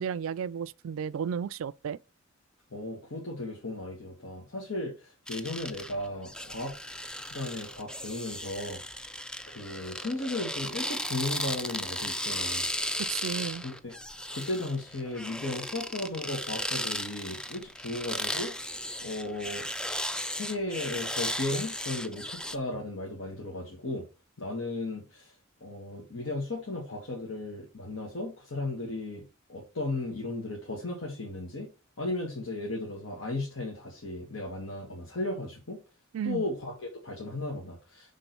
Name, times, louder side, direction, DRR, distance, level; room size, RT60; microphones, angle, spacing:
voice 1, 0.0-2.0 13.0-13.6 36.1-36.4, right 7 dB, 80° right, 0.3 m, -33 dB
voice 2, 2.7-6.7 7.2-8.8 9.5-12.7 13.6-13.9 14.3-19.6 20.3-24.0 24.4-25.3 25.6-29.2 29.5-31.7 32.0-35.8 36.2-38.1, left 2 dB, 70° left, 1.6 m, -35 dB
sound 1, 5.3-22.6, left 1 dB, 5° left, 0.3 m, -35 dB
6.0 x 3.7 x 5.3 m
head